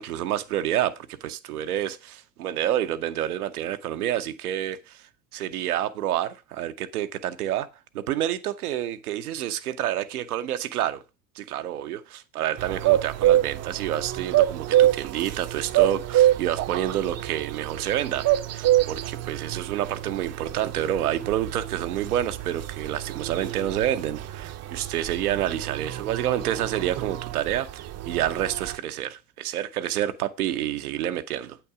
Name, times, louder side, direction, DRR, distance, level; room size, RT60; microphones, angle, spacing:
voice 1, 0.0-5.0 5.3-7.7 7.9-11.0 11.4-18.3 18.5-31.6, right 11 dB, 80° right, 0.8 m, -28 dB
sound 1, 12.6-28.8, right 13 dB, 35° right, 0.6 m, -26 dB
8.6 x 5.9 x 4.7 m
hypercardioid pair, 70°, 44 cm